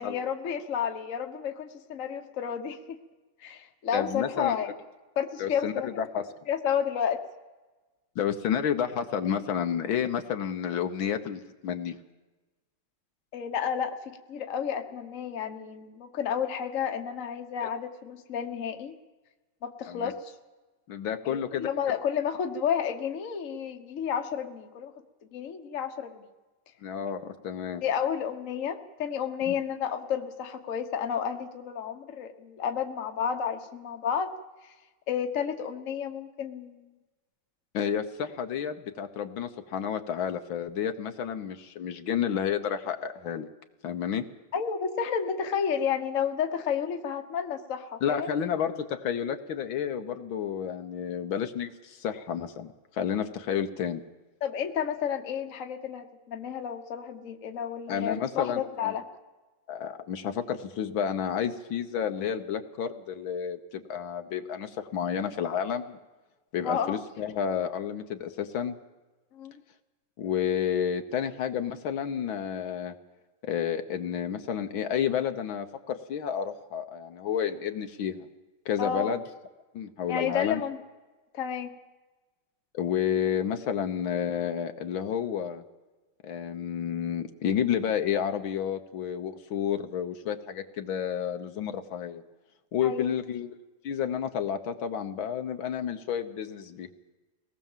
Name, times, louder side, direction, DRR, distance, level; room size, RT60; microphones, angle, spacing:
voice 1, 0.0-2.8 3.4-4.7 5.2-5.9 6.5-7.2 13.3-18.9 19.6-20.3 21.2-24.9 25.3-26.2 27.8-34.3 35.1-36.9 44.5-48.3 54.4-59.0 66.6-67.0 69.3-69.5 78.8-79.2 80.1-80.8 81.3-81.8 92.8-93.1, left 8 dB, 45° left, 6 dB, 1.4 m, -31 dB
voice 2, 3.9-4.6 5.4-6.3 8.2-12.0 17.6-17.7 19.9-20.1 20.9-21.7 26.8-27.8 29.5-29.6 37.7-43.5 43.8-44.2 48.0-54.0 57.9-59.0 59.7-66.0 66.5-68.8 70.2-72.9 73.4-78.3 78.7-79.2 79.7-80.6 82.7-85.6 86.2-92.2 92.7-93.5 93.8-96.9, left 8 dB, 75° left, 7 dB, 1.8 m, -30 dB
23.0 x 18.5 x 7.4 m, 1.2 s
omnidirectional pair, 2.2 m